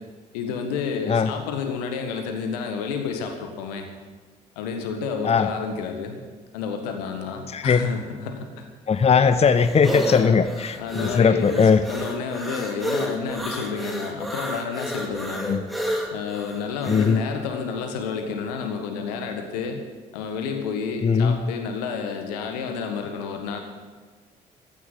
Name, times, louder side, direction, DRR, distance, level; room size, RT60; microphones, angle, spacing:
voice 1, 0.3-3.9 4.5-6.2 6.5-8.7 10.1-10.4 10.8-15.6 16.1-19.8 20.1-23.6, left 5 dB, 75° left, 5 dB, 1.6 m, -30 dB
voice 2, 7.5-7.8 8.9-11.8 15.5-15.6 16.9-17.2 21.0-21.4, left 6 dB, 30° left, 11 dB, 0.7 m, -19 dB
sound 1, 8.9-17.2, equal, ahead, 2.6 m, -31 dB
15.0 x 8.2 x 8.6 m, 1.4 s
figure-of-eight pair, 45°, 21 cm